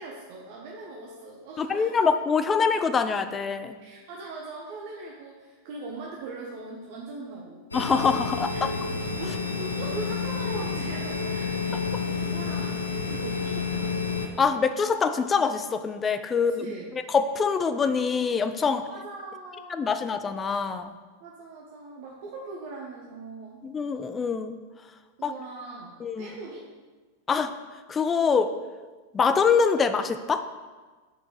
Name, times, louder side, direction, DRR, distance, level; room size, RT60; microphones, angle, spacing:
voice 1, 0.0-2.0 3.8-7.7 8.5-8.7 9.2-14.0 16.5-16.9 18.9-20.0 21.2-23.6 25.2-26.7, right 3 dB, 50° right, -2 dB, 0.8 m, -40 dB
voice 2, 1.6-3.8 7.7-8.7 14.4-16.7 17.1-18.9 19.7-20.9 23.6-24.6 25.2-25.3 26.0-26.4 27.3-27.5 27.9-28.5 29.1-30.4, left 5 dB, 20° left, 10 dB, 0.4 m, -24 dB
sound 1, 7.7-14.3, left 4 dB, 80° left, 0.6 m, -30 dB
5.0 x 4.6 x 5.4 m, 1.3 s
figure-of-eight pair, 90°, 0 cm